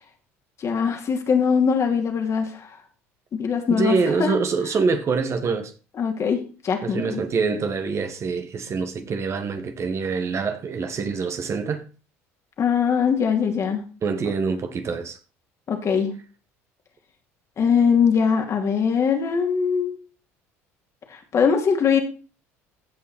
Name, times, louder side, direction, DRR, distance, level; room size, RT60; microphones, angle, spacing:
voice 1, 0.6-2.7 3.3-4.4 6.0-7.2 12.6-13.9 15.7-16.1 17.6-20.0 21.1-22.0, left 6 dB, 45° left, 2.8 m, -22 dB
voice 2, 3.7-5.7 6.8-11.8 14.0-15.2, right 4 dB, 40° right, 1.7 m, -25 dB
15.5 x 5.6 x 4.3 m
hypercardioid pair, 70°, 7 cm